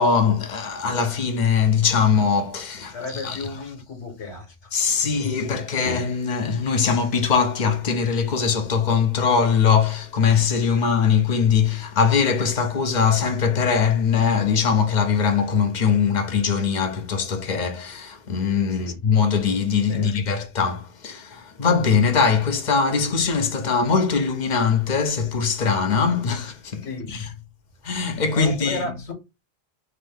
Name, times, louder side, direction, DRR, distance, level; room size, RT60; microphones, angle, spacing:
voice 1, 0.0-3.4 4.7-27.2 27.8-28.8, left 6 dB, 45° left, 0.6 m, -21 dB
voice 2, 2.9-4.7 18.7-19.0 19.9-20.2 26.8-27.1 28.3-29.1, left 3 dB, 65° left, 1.4 m, -34 dB
3.8 x 2.6 x 3.4 m
omnidirectional pair, 1.3 m